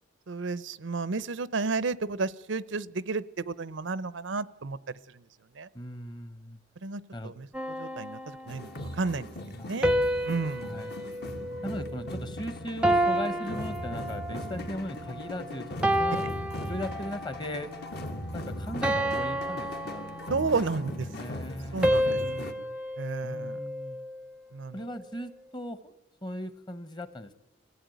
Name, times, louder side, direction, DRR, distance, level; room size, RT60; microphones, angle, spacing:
voice 1, 0.3-4.8 5.1-5.2 5.5-5.7 6.8-7.5 7.8-9.3 9.6-9.9 10.2-10.7 20.3-21.1 21.7-22.4 23.0-23.6 24.5-24.8, right 4 dB, 90° right, 17 dB, 0.7 m, -32 dB
voice 2, 5.7-6.6 7.1-7.3 9.6-9.7 10.6-10.9 11.6-16.3 16.6-17.8 18.3-20.2 20.5-22.5 23.2-24.0 24.7-25.9 26.2-27.3, left 1 dB, 25° left, 12 dB, 1.1 m, -38 dB
sound 1, 7.5-8.8 9.8-12.3 12.8-14.5 15.1-15.4 15.8-17.4 17.8-18.1 18.8-20.7 21.8-24.2, equal, 5° right, 0.7 m, -30 dB
sound 2, 8.5-22.5, left 1 dB, 60° left, 1.7 m, -39 dB
sound 3, 11.0-22.5, left 2 dB, 90° left, 0.8 m, -49 dB
23.5 x 15.5 x 9.3 m, 1.0 s
head